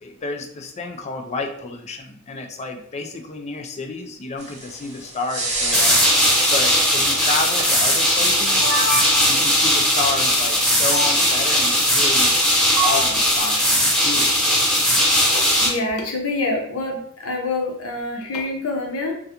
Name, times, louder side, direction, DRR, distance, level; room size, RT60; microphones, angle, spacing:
voice 1, 0.0-6.0 6.5-8.8 9.3-12.5 12.8-14.5, left 3 dB, 30° left, 4 dB, 0.3 m, -30 dB
sound 1, 4.4-13.4, right 2 dB, 35° right, 1.0 m, -31 dB
sound 2, 5.7-15.7, equal, 5° left, 0.9 m, -18 dB
sound 3, 8.3-9.5 10.9-11.1 12.8-13.2, right 1 dB, 80° right, 0.8 m, -25 dB
voice 2, 15.3-19.1, left 2 dB, 75° left, 1 dB, 0.8 m, -26 dB
3.3 x 2.3 x 2.8 m, 0.66 s
head